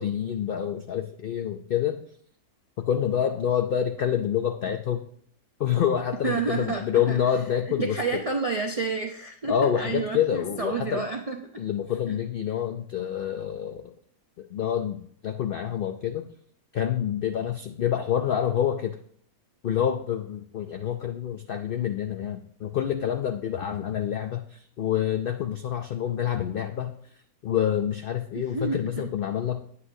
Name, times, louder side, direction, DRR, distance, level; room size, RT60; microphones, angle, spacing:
voice 1, 0.0-2.0 2.9-5.1 5.6-8.2 9.5-11.0 11.6-13.9 14.4-16.3 16.7-19.0 19.6-26.9 27.4-29.6, left 9 dB, 80° left, 7 dB, 0.5 m, -27 dB
voice 2, 6.2-7.2 7.7-11.6 12.1-12.2 28.3-29.1, right 4 dB, 60° right, 2 dB, 0.3 m, -30 dB
9.7 x 8.2 x 2.7 m, 0.62 s
omnidirectional pair, 1.5 m